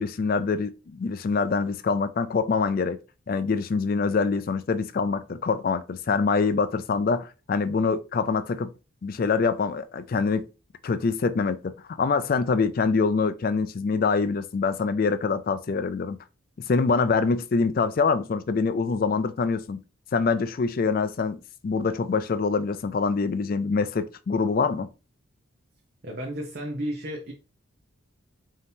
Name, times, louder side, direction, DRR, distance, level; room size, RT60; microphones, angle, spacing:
voice 1, 0.0-3.0 3.3-8.7 9.0-10.4 10.8-16.2 16.7-19.8 20.1-21.4 21.6-24.9, left 4 dB, 45° left, 0.3 m, -25 dB
voice 2, 26.0-27.3, equal, 45° right, 0.8 m, -32 dB
5.1 x 2.8 x 2.8 m
head